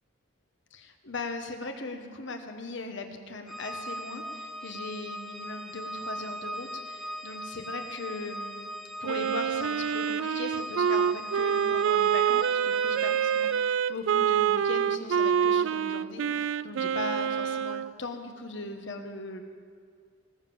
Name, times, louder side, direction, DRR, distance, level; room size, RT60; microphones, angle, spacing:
voice 1, 0.7-8.7 9.0-19.4, left 3 dB, 60° left, 5 dB, 1.3 m, -39 dB
Organ, 3.5-13.9, equal, ahead, 0.5 m, -39 dB
Wind instrument woodwind instrument, 9.0-17.9, right 8 dB, 65° right, 0.3 m, -26 dB
19.5 x 7.4 x 7.1 m, 2.1 s
head